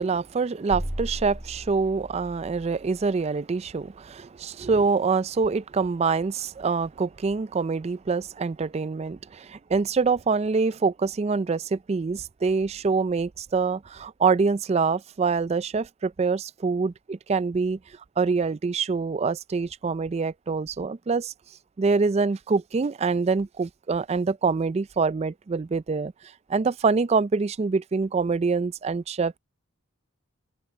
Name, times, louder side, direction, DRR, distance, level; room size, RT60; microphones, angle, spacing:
voice 1, 0.0-17.8 18.2-21.3 21.8-26.1 26.5-29.4, right 4 dB, 30° right, 0.3 m, -25 dB
sound 1, 0.7-3.1, equal, 10° right, 1.2 m, -36 dB
open air
head